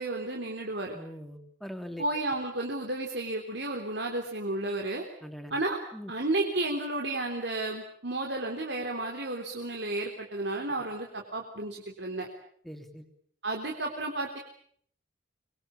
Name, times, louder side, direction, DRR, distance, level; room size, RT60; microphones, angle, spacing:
voice 1, 0.0-0.9 2.0-5.0 5.5-5.8 6.1-12.3 13.4-14.4, right 2 dB, 65° right, 1 dB, 3.6 m, -32 dB
voice 2, 0.9-2.0 5.2-5.5 5.9-6.1 12.6-13.1, equal, ahead, 6 dB, 2.9 m, -42 dB
25.0 x 22.5 x 8.6 m, 0.63 s
head